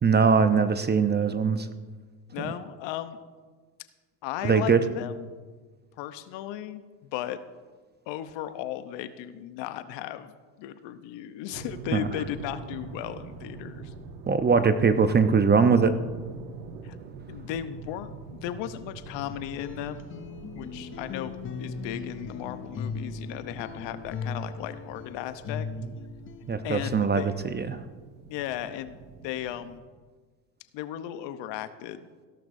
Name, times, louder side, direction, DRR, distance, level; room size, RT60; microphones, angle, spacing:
voice 1, 0.0-1.7 4.4-4.8 11.9-12.1 14.3-15.9 26.5-27.2 27.5-27.8, right 5 dB, 20° right, 10 dB, 0.8 m, -21 dB
voice 2, 2.3-3.2 4.2-5.3 6.0-7.4 8.1-10.3 10.6-13.9 16.8-17.0 17.3-20.1 20.5-25.7 26.6-27.3 28.3-29.0 29.2-29.8 30.7-32.1, left 11 dB, 60° left, 11 dB, 0.9 m, -36 dB
sound 1, 11.5-29.8, right 5 dB, 80° right, 1.3 m, -44 dB
sound 2, 19.2-27.4, left 5 dB, 25° left, 0.6 m, -38 dB
16.5 x 12.5 x 2.7 m, 1.4 s
hypercardioid pair, 80°, 50 cm